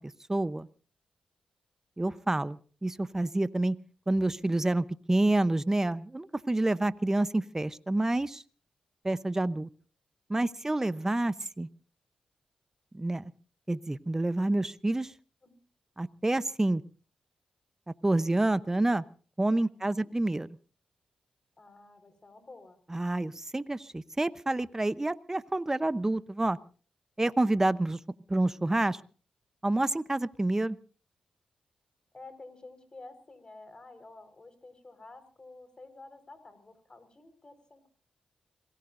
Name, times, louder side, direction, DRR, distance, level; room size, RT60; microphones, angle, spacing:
voice 1, 0.3-0.7 2.0-3.8 4.1-8.4 9.0-9.7 10.3-11.7 12.9-13.3 13.7-15.1 16.0-16.8 18.0-19.0 19.4-20.5 22.9-26.6 27.2-28.0 28.3-29.0 29.6-30.8, right 2 dB, 20° right, 15 dB, 0.8 m, -28 dB
voice 2, 19.6-20.1 21.6-22.8 32.1-37.9, left 2 dB, 35° left, 9 dB, 4.6 m, -51 dB
27.0 x 18.0 x 2.6 m, 0.38 s
supercardioid pair, 50°, 2 cm